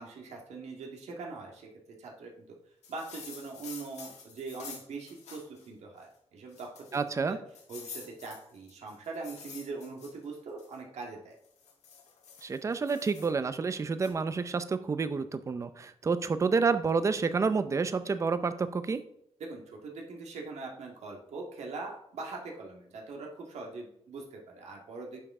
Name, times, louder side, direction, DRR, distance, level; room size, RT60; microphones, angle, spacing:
voice 1, 0.0-1.7 2.0-2.6 2.9-7.0 7.3-7.4 7.7-11.4 19.4-25.2, right 3 dB, 85° right, 0 dB, 1.9 m, -42 dB
sound 1, 2.8-5.7 6.0-6.1 6.5-7.1 7.5-10.8 11.3-13.3 14.0-14.1, left 5 dB, 85° left, 1.7 m, -48 dB
voice 2, 6.9-7.4 12.4-19.0, right 4 dB, 25° right, 11 dB, 0.5 m, -29 dB
10.5 x 6.9 x 3.7 m, 0.72 s
wide cardioid pair, 170°, 11 cm